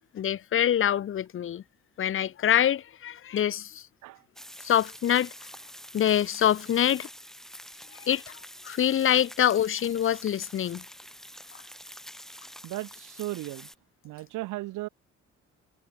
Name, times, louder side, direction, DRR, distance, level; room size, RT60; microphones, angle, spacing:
voice 1, 0.1-1.6 2.0-3.8 4.6-5.3 5.9-7.1 7.9-8.4 8.6-10.8, left 10 dB, 45° left, 0.7 m, -25 dB
sound 1, 4.4-13.8, equal, ahead, 7.7 m, -46 dB
voice 2, 12.6-13.7 14.0-14.9, right 18 dB, 90° right, 0.9 m, -36 dB
cardioid pair, 90°, 30 cm